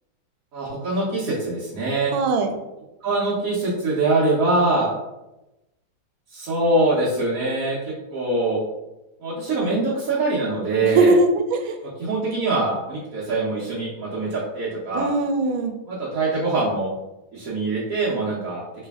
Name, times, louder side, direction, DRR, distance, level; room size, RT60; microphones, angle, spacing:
voice 1, 0.5-2.1 3.0-4.9 6.3-7.8 8.1-8.6 9.2-11.2 12.0-15.1 15.9-16.9 17.3-18.6, right 2 dB, 55° right, -8 dB, 1.1 m, -23 dB
voice 2, 2.1-2.6 10.8-11.8 14.9-15.7, right 3 dB, 90° right, 6 dB, 1.4 m, -20 dB
3.2 x 3.2 x 3.4 m, 0.97 s
omnidirectional pair, 2.1 m